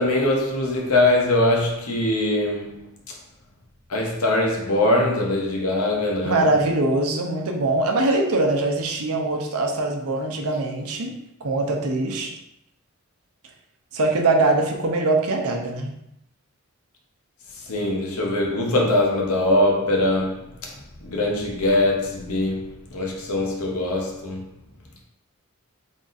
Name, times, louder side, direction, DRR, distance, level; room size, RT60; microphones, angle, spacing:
voice 1, 0.0-3.1 3.9-6.5 17.5-24.5, left 1 dB, 70° left, 0.9 m, -22 dB
voice 2, 6.2-11.1 11.4-12.3 13.9-15.9, right 2 dB, 75° right, 0.7 m, -22 dB
3.6 x 2.5 x 4.0 m
head